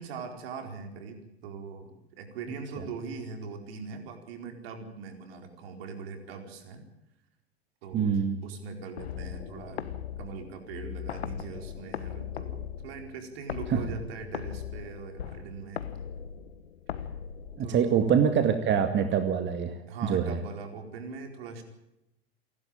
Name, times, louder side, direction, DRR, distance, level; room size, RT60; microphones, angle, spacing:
voice 1, 0.0-6.8 7.8-9.9 10.2-15.8 17.6-18.1 19.9-21.6, right 5 dB, 70° right, 5 dB, 4.6 m, -41 dB
voice 2, 7.9-8.4 13.7-13.8 17.6-19.7 20.1-20.4, right 7 dB, 35° right, 7 dB, 2.2 m, -24 dB
sound 1, 9.0-18.0, left 9 dB, 90° left, 1.3 m, -39 dB
28.5 x 12.5 x 8.9 m, 0.86 s
hypercardioid pair, 90°, 31 cm